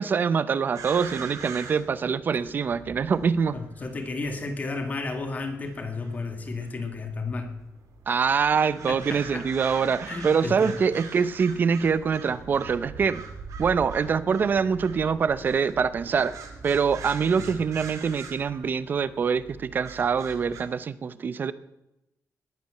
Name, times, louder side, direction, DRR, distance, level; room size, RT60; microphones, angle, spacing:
voice 1, 0.0-3.6 8.1-13.2 13.6-16.3 16.6-21.5, right 6 dB, 35° right, 15 dB, 0.7 m, -24 dB
sound 1, 0.7-20.6, right 5 dB, 85° right, 2.6 m, -43 dB
voice 2, 3.5-7.5 8.9-10.8 17.4-17.6, left 3 dB, 30° left, 6 dB, 2.0 m, -33 dB
20.0 x 8.7 x 7.7 m, 0.90 s
wide cardioid pair, 180°, 5 cm